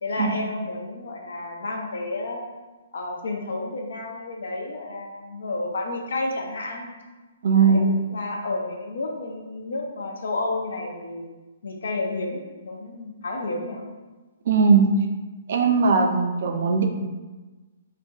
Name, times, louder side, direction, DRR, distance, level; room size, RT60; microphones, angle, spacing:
voice 1, 0.0-2.4 2.9-6.9 7.5-11.3 11.6-13.8, left 2 dB, 75° left, 1 dB, 0.6 m, -31 dB
voice 2, 7.4-7.8 14.5-14.9 15.5-16.9, right 5 dB, 50° right, 3 dB, 0.4 m, -19 dB
4.2 x 2.6 x 2.3 m, 1.2 s
hypercardioid pair, 175°, 0 cm